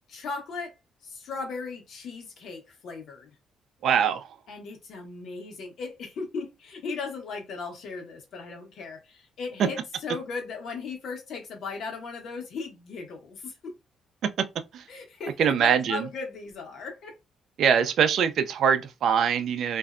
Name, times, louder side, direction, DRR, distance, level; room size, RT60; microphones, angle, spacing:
voice 1, 0.1-0.7 1.0-3.3 4.5-13.7 14.9-17.2, left 4 dB, 70° left, 1.0 m, -37 dB
voice 2, 3.8-4.3 14.7-14.8 15.4-16.1 17.6-19.8, right 7 dB, 70° right, 0.4 m, -23 dB
2.5 x 2.1 x 2.4 m
cardioid pair, 90°, 0 cm